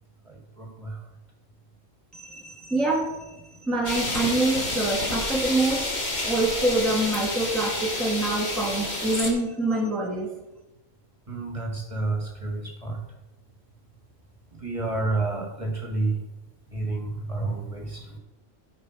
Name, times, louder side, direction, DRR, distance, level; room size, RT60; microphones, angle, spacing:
voice 1, 0.3-1.0 11.3-13.0 14.6-16.2 16.7-18.2, right 2 dB, 25° right, 0 dB, 1.8 m, -30 dB
voice 2, 2.1-10.3, right 2 dB, ahead, -2 dB, 1.4 m, -26 dB
sound 1, 3.8-9.3, left 2 dB, 35° left, 1.7 m, -29 dB
12.5 x 5.3 x 4.6 m, 1.0 s
omnidirectional pair, 1.4 m